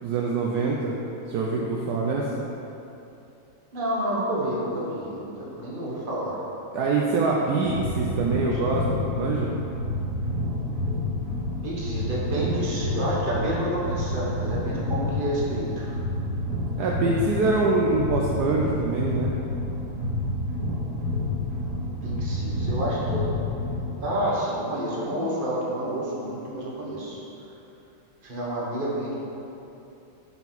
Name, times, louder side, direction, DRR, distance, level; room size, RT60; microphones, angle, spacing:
voice 1, 0.0-0.9 1.3-2.4 6.7-9.5 16.8-19.3, right 3 dB, 70° right, -2 dB, 0.9 m, -24 dB
voice 2, 3.7-6.4 8.1-8.6 11.6-16.0 21.6-23.2 24.0-27.2 28.2-29.2, right 1 dB, 30° right, -6 dB, 1.3 m, -29 dB
sound 1, 7.6-24.1, left 1 dB, 45° right, 1.5 m, -29 dB
9.6 x 4.5 x 4.1 m, 2.8 s
omnidirectional pair, 2.3 m